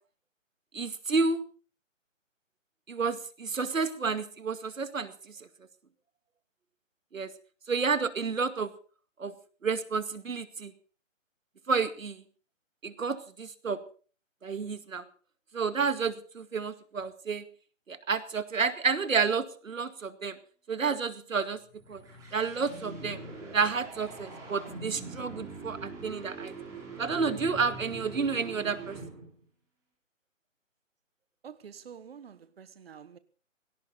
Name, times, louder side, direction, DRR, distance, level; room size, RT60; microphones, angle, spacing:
voice 1, 0.7-1.4 2.9-5.1 7.1-7.3 7.7-8.7 9.2-9.3 9.6-10.7 11.7-12.2 12.8-13.8 14.4-15.0 15.5-17.4 17.9-20.4 20.7-21.6 21.9-22.0 22.3-23.2 23.5-26.5 27.0-29.0, right 5 dB, 80° right, 2.3 m, -30 dB
sound 1, 21.6-29.4, right 3 dB, 10° right, 4.1 m, -43 dB
voice 2, 31.4-33.2, right 7 dB, 50° right, 1.4 m, -48 dB
17.5 x 17.5 x 4.1 m
hypercardioid pair, 165°, 39 cm